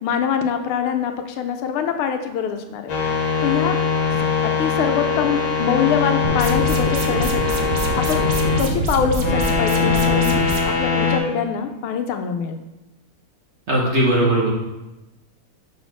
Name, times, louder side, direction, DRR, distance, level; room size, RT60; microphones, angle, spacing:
voice 1, 0.0-2.9 3.4-3.8 4.6-7.6 7.9-8.2 8.6-10.3 10.6-12.6, left 7 dB, 90° left, 6 dB, 1.6 m, -24 dB
sound 1, 2.9-8.6 9.1-11.2, left 5 dB, 65° left, 1.9 m, -21 dB
sound 2, 6.2-10.6, right 2 dB, 60° right, 0.7 m, -25 dB
voice 2, 13.7-14.5, right 1 dB, 40° right, -4 dB, 1.0 m, -18 dB
5.4 x 4.2 x 6.0 m, 1.0 s
omnidirectional pair, 2.3 m